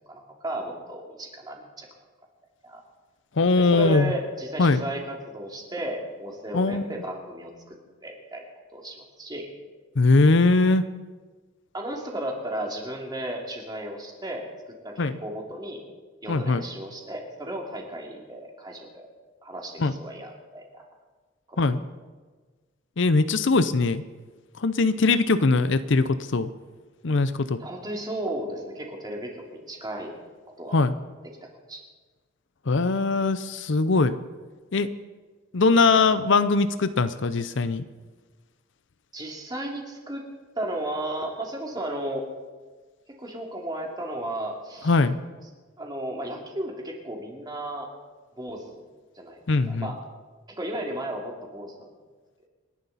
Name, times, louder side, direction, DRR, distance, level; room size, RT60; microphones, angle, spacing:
voice 1, 0.1-1.9 2.6-2.8 3.6-7.5 8.0-8.4 8.7-9.5 11.7-14.4 14.8-15.8 16.2-19.1 19.4-20.7 21.5-21.6 27.6-30.2 30.6-30.8 31.7-31.8 39.1-40.2 40.5-42.3 43.2-44.9 45.8-47.9 48.4-48.8 49.2-49.4 49.7-50.0 50.6-51.9, right 1 dB, 20° right, 0 dB, 2.6 m, -34 dB
voice 2, 3.4-4.1 4.6-4.8 6.5-6.9 10.0-10.8 15.0-15.2 16.3-16.6 19.8-19.9 21.6-21.8 23.0-24.0 24.6-26.5 27.0-27.6 30.7-30.9 32.7-34.1 34.7-34.9 35.5-37.8 44.8-45.2 49.5-49.9, left 3 dB, 65° left, 12 dB, 0.6 m, -21 dB
28.0 x 11.0 x 4.1 m, 1.4 s
head